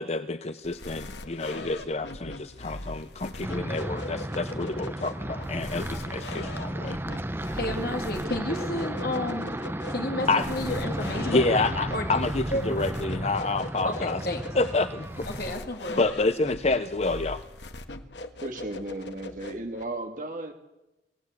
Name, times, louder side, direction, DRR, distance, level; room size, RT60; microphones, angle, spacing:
voice 1, 0.0-7.0 10.3-10.5 11.2-14.2 14.5-15.3 15.9-17.4, left 3 dB, 35° left, 11 dB, 0.7 m, -28 dB
sound 1, 0.6-19.8, left 2 dB, 80° left, 1.6 m, -41 dB
sound 2, 3.4-15.6, right 1 dB, 15° right, 0.8 m, -34 dB
voice 2, 7.5-9.6 9.9-11.4 11.9-12.2 12.5-12.7 13.8-14.4 15.3-16.0, left 1 dB, 55° left, 3 dB, 2.4 m, -31 dB
voice 3, 18.4-20.5, right 2 dB, 45° right, 4 dB, 2.5 m, -35 dB
26.5 x 17.0 x 8.3 m, 0.98 s
head